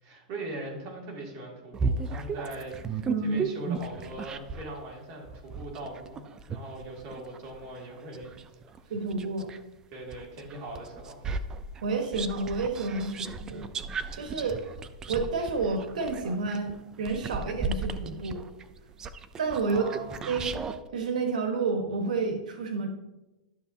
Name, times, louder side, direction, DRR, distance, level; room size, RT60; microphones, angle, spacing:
voice 1, 0.0-8.3 8.8-8.9 9.9-11.3 14.3-14.5 19.6-20.3, right 2 dB, 35° right, -2 dB, 2.4 m, -41 dB
sound 1, 1.7-4.7 5.3-9.6 10.1-20.8, right 4 dB, 15° right, 0.4 m, -35 dB
voice 2, 3.1-3.4 8.9-9.5 11.8-13.7 14.1-14.6 15.1-16.7 17.0-18.4 19.4-19.9 20.3-20.5 20.9-22.9, right 4 dB, 85° right, 4 dB, 1.2 m, -30 dB
11.5 x 6.7 x 2.7 m, 1.0 s
supercardioid pair, 160°, 4 cm